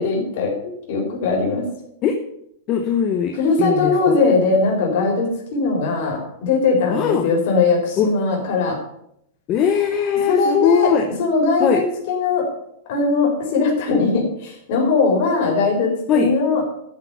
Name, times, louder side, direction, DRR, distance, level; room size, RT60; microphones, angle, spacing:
voice 1, 0.0-1.7 3.3-8.8 10.3-10.9 11.2-12.5 12.9-16.6, left 4 dB, 45° left, 0 dB, 4.7 m, -20 dB
voice 2, 2.7-4.2 6.9-7.3 8.0-8.1 9.5-11.1 11.6-11.8 16.1-16.3, left 7 dB, 25° left, 5 dB, 0.9 m, -20 dB
13.0 x 8.3 x 5.6 m, 0.76 s
supercardioid pair, 170°, 0 cm